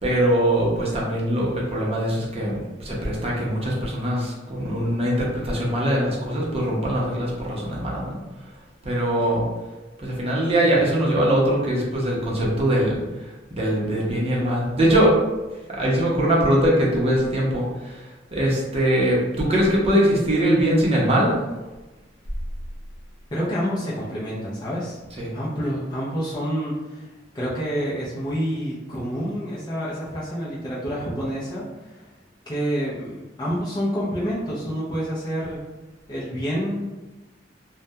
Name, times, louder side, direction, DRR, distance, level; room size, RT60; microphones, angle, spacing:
voice 1, 0.0-8.2 8.8-9.4 10.0-13.0 13.5-15.2 15.7-21.3 25.2-25.3, right 1 dB, 35° right, -4 dB, 0.6 m, -22 dB
voice 2, 23.3-25.0 25.3-32.0 32.5-35.6 36.1-36.8, equal, 25° left, -8 dB, 0.5 m, -28 dB
2.2 x 2.1 x 2.7 m, 1.1 s
head